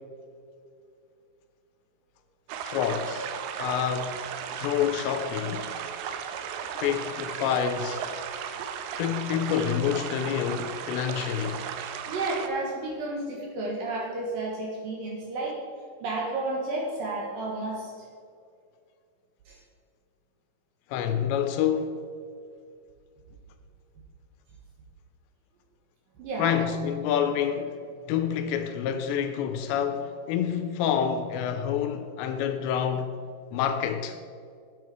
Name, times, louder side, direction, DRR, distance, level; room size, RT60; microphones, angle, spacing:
sound 1, 2.5-12.5, right 8 dB, 85° right, 2.3 m, -35 dB
voice 1, 2.6-3.3 3.6-4.2 4.5-5.7 6.8-8.0 9.0-11.6 20.9-21.9 26.4-27.8 28.1-33.1 33.5-34.2, left 8 dB, 85° left, 2.7 m, -27 dB
voice 2, 12.1-15.6 16.0-17.9 19.5-19.6 26.2-26.7, right 2 dB, 65° right, 2.4 m, -32 dB
9.4 x 8.7 x 4.7 m
omnidirectional pair, 5.3 m